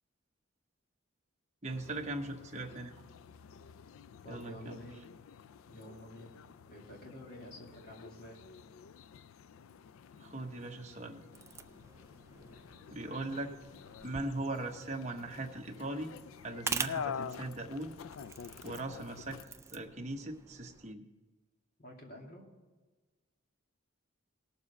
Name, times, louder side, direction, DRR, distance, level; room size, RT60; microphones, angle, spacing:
voice 1, 1.6-2.9 4.3-4.8 10.2-11.2 12.9-13.5 14.0-16.1 16.4-17.9 18.6-19.4 19.7-21.0, right 2 dB, 35° right, 3 dB, 1.0 m, -39 dB
sound 1, 1.7-19.4, left 7 dB, 85° left, 0.4 m, -48 dB
voice 2, 4.2-5.0 5.7-6.4 6.7-8.4 12.3-12.6 21.8-22.5, equal, 45° left, 0 dB, 2.3 m, -50 dB
sound 2, 11.3-20.9, right 5 dB, 15° right, 0.3 m, -45 dB
18.5 x 7.1 x 4.2 m, 1.3 s
head